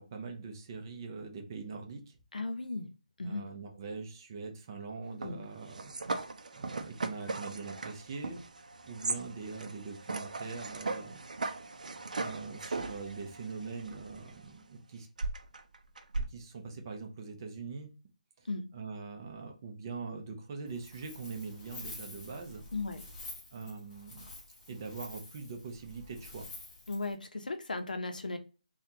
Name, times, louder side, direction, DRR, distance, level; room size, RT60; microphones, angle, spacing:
voice 1, 0.0-2.2 3.2-5.9 6.5-8.4 8.8-11.2 12.1-15.1 16.3-17.9 18.4-18.5 18.7-22.6 23.5-24.3 24.7-26.5, right 4 dB, 30° right, 2 dB, 0.7 m, -42 dB
voice 2, 2.3-2.9 3.2-3.4 5.2-5.4 18.5-18.6 22.7-23.0 26.9-28.4, left 3 dB, 90° left, 7 dB, 0.6 m, -36 dB
sound 1, 5.2-14.5 15.2-16.2, right 3 dB, 65° right, 0.5 m, -38 dB
Wind, 20.7-27.1, left 2 dB, 15° left, 0.7 m, -48 dB
3.5 x 2.3 x 2.7 m, 0.33 s
hypercardioid pair, 165°, 4 cm